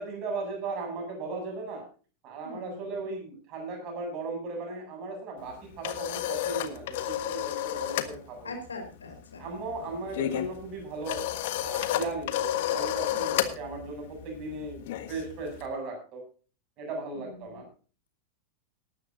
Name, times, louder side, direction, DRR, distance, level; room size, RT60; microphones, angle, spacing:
voice 1, 0.0-1.8 2.2-8.5 9.4-11.2 11.6-16.2 16.8-17.7, right 3 dB, 40° right, 2 dB, 8.0 m, -37 dB
voice 2, 2.4-3.0 8.4-9.4 13.1-13.6 17.1-17.6, left 3 dB, 75° left, 4 dB, 4.8 m, -43 dB
sound 1, 5.5-8.2 8.4-8.7 9.0-15.7, left 13 dB, 55° left, 1.4 m, -31 dB
18.5 x 13.0 x 2.7 m, 0.37 s
figure-of-eight pair, 90°, 0 cm